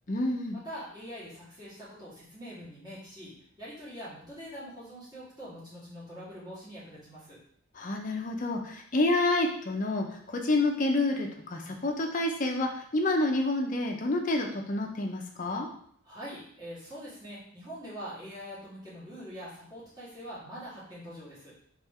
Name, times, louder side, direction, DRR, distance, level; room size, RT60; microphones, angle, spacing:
voice 1, 0.1-0.6 7.8-15.7, left 2 dB, 40° left, 2 dB, 0.5 m, -28 dB
voice 2, 0.6-7.4 16.0-21.5, equal, 20° right, -9 dB, 1.7 m, -44 dB
3.2 x 3.2 x 3.5 m, 0.63 s
head